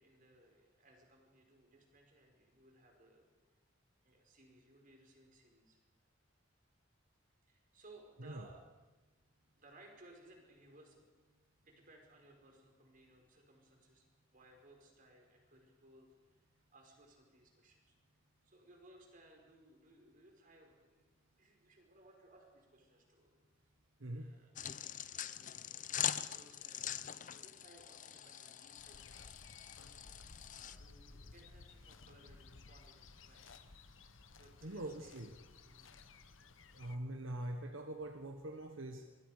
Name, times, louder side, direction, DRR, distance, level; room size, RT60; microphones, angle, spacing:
voice 1, 0.0-3.3 4.0-5.8 7.5-8.6 9.5-11.1 11.6-14.1 14.3-16.4 16.7-18.0 18.4-21.1 21.4-23.4 24.1-24.6 25.1-30.1 30.5-33.6 34.4-35.2 35.6-36.0, right 1 dB, 45° right, 1 dB, 4.8 m, -63 dB
voice 2, 24.0-24.4 34.6-35.3 36.7-39.1, right 1 dB, 80° right, 5 dB, 1.4 m, -43 dB
sound 1, 24.6-30.8, left 10 dB, 40° left, 0.6 m, -43 dB
sound 2, 28.8-37.0, left 3 dB, 75° left, 1.1 m, -58 dB
26.5 x 20.5 x 5.0 m, 1.2 s
head